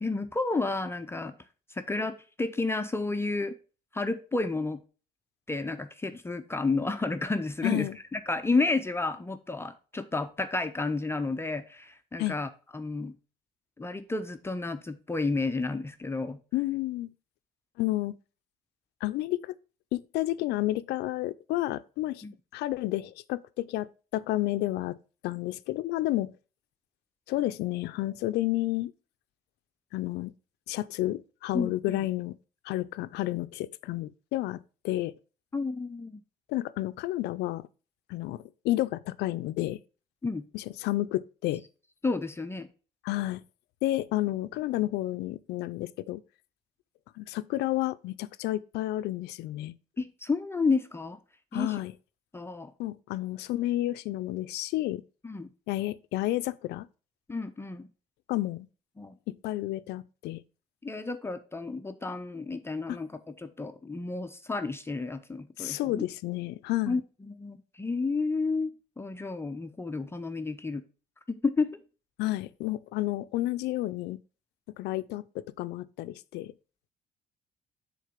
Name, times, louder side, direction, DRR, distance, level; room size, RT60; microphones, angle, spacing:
voice 1, 0.0-1.4 1.7-3.6 3.9-4.8 5.5-13.1 13.8-16.4 22.2-22.3 31.5-32.0 35.5-36.2 40.2-40.5 42.0-42.7 50.0-51.2 51.5-51.8 52.3-52.7 55.2-55.5 57.3-57.9 59.0-59.1 60.8-66.1 66.9-68.7 69.0-70.8 71.3-71.8, left 3 dB, 15° left, 0.5 m, -31 dB
voice 2, 7.6-8.0 12.2-12.3 16.5-17.1 17.8-18.1 19.0-19.6 19.9-22.2 22.5-23.9 24.1-25.0 25.2-26.3 27.3-28.9 29.9-30.3 30.7-32.4 32.6-34.6 34.8-35.1 36.5-37.7 38.1-39.8 40.5-41.6 43.0-43.4 43.8-46.2 47.2-49.7 51.5-51.9 52.8-55.0 55.7-56.9 58.3-58.7 59.3-60.4 62.9-63.0 65.6-67.0 72.2-74.2 74.8-76.5, left 16 dB, 80° left, 0.4 m, -31 dB
6.5 x 3.9 x 4.9 m
cardioid pair, 110°, 17 cm